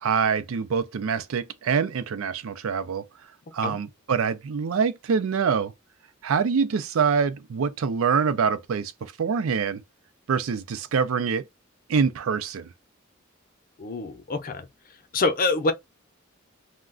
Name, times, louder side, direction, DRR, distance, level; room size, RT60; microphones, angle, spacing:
voice 1, 0.0-3.0 3.5-5.7 6.2-9.8 10.3-11.4 11.9-12.7, right 6 dB, 90° right, 0.4 m, -25 dB
voice 2, 13.8-14.7 15.1-15.7, left 3 dB, 45° left, 0.5 m, -25 dB
2.3 x 2.1 x 3.6 m
head